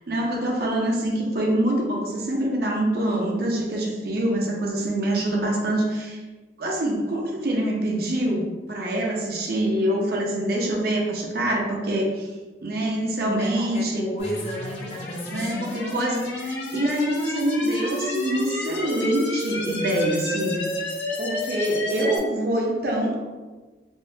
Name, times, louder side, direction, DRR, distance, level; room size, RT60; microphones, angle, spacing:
voice 1, 0.1-6.2 6.6-12.3 12.6-14.0 15.3-20.6 21.2-23.3, right 1 dB, 55° right, -1 dB, 0.5 m, -25 dB
voice 2, 13.2-15.9, equal, 35° left, -3 dB, 0.6 m, -33 dB
sound 1, 14.2-22.2, left 1 dB, 80° left, 0.7 m, -30 dB
3.5 x 2.1 x 2.6 m, 1.3 s
head